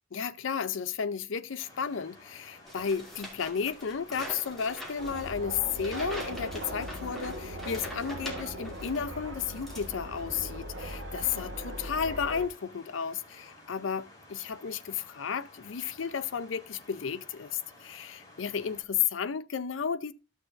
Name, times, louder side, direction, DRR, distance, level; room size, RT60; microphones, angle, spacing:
voice 1, 0.1-20.1, left 7 dB, 85° left, 0.5 m, -33 dB
sound 1, 1.6-18.8, left 2 dB, 20° left, 3.7 m, -54 dB
sound 2, 2.7-9.1 9.4-10.3, equal, ahead, 2.4 m, -44 dB
sound 3, 5.0-12.5, right 1 dB, 90° right, 1.2 m, -39 dB
13.5 x 6.6 x 2.5 m
head